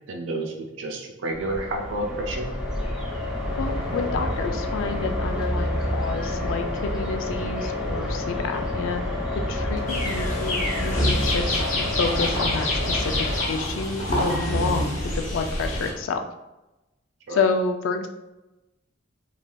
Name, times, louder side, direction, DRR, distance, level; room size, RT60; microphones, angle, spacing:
voice 1, 0.1-2.5 17.3-17.4, right 2 dB, 65° right, 2 dB, 0.4 m, -30 dB
sound 1, 1.3-13.4, left 1 dB, 5° right, 0.4 m, -28 dB
voice 2, 3.6-9.1 9.3-11.6 12.0-13.1 13.5-16.2 17.3-18.1, left 4 dB, 80° left, 6 dB, 0.3 m, -29 dB
sound 2, 9.9-15.9, left 1 dB, 40° left, 0.7 m, -27 dB
3.2 x 2.5 x 2.2 m, 1.0 s
head